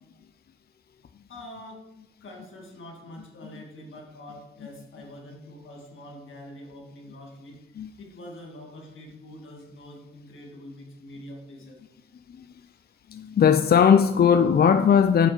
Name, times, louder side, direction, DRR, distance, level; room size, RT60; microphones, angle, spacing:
voice 1, 1.3-1.9 2.2-11.8, left 1 dB, 90° left, 2.0 m, -44 dB
voice 2, 13.1-15.3, left 7 dB, 55° left, 0.4 m, -18 dB
7.8 x 4.8 x 6.1 m
cardioid pair, 70°, 20 cm